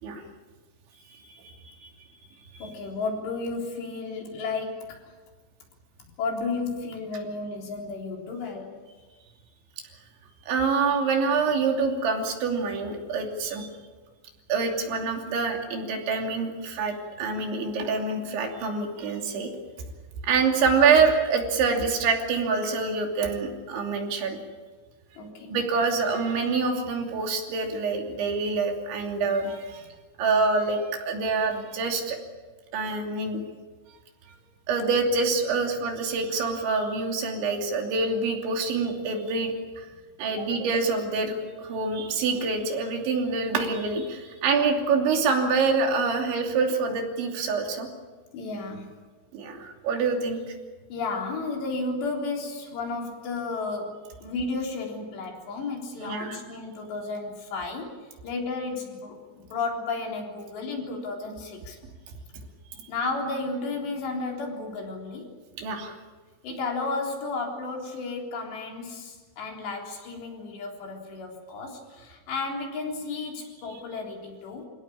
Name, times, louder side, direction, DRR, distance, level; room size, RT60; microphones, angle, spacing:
voice 1, 1.1-1.9 2.5-2.7 10.5-13.7 14.5-19.5 20.2-24.4 25.5-29.8 30.2-32.2 32.7-33.4 34.7-39.9 40.2-47.9 49.3-50.4 56.0-56.4 65.6-66.0 73.7-73.8, right 4 dB, 75° right, 2 dB, 5.2 m, -26 dB
voice 2, 2.6-5.0 6.2-8.8 25.2-25.5 40.4-40.5 48.3-48.9 50.9-58.0 58.2-61.8 62.9-65.3 66.4-74.7, left 3 dB, 65° left, 0 dB, 5.9 m, -33 dB
28.5 x 17.5 x 8.7 m, 1.4 s
omnidirectional pair, 5.3 m